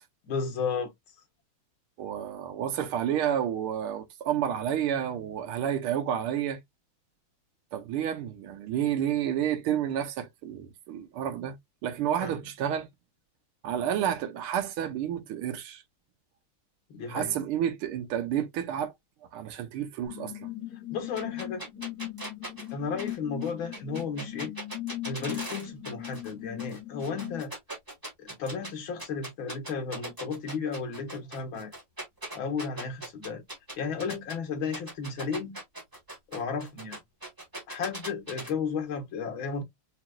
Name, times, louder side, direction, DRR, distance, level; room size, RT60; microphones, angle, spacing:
voice 1, 0.2-0.9 12.2-12.3 16.9-17.4 20.9-21.6 22.7-24.5 25.1-27.5 28.2-31.7 32.3-33.4 33.8-35.6 36.3-37.0 37.7-39.6, left 5 dB, 70° left, 2.0 m, -33 dB
voice 2, 2.0-6.6 7.7-11.5 11.8-12.9 13.6-15.8 17.1-18.9 19.3-20.3, right 10 dB, 80° right, 1.7 m, -30 dB
sound 1, 20.1-27.4, left 15 dB, 45° left, 2.7 m, -39 dB
sound 2, 21.2-26.3 26.6-28.7 29.0-34.4 34.7-38.5, right 1 dB, 10° right, 1.5 m, -40 dB
5.1 x 3.0 x 2.3 m
omnidirectional pair, 2.4 m